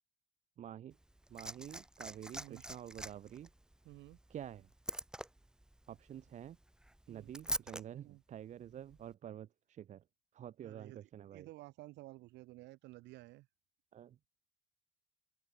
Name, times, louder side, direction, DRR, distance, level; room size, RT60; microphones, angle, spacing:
voice 1, 0.6-1.0 1.3-3.5 4.3-4.7 5.9-6.6 7.1-10.0 10.3-11.5 13.9-14.2, right 10 dB, 40° right, 1.9 m, -49 dB
Liquid, 0.9-7.8 8.9-9.0, right 1 dB, 5° right, 1.9 m, -45 dB
voice 2, 3.8-4.2 7.1-7.3 8.0-8.2 10.6-13.5, right 19 dB, 65° right, 7.5 m, -54 dB
open air
cardioid pair, 145°, 19 cm